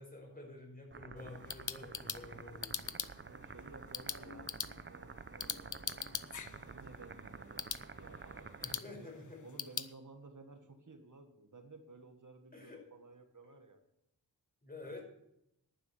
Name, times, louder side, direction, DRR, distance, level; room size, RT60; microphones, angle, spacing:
voice 1, 0.0-3.0 8.6-9.4 12.5-12.8 14.6-15.0, left 2 dB, 25° left, 0 dB, 5.2 m, -50 dB
sound 1, 0.9-8.8, right 4 dB, 30° right, 0.7 m, -50 dB
sound 2, 1.2-9.9, left 7 dB, 50° left, 0.7 m, -44 dB
voice 2, 3.3-6.1 6.7-9.1 9.4-13.8 14.8-15.0, right 3 dB, 55° right, 5 dB, 1.5 m, -55 dB
11.0 x 9.5 x 7.0 m, 0.81 s
wide cardioid pair, 90°, 37 cm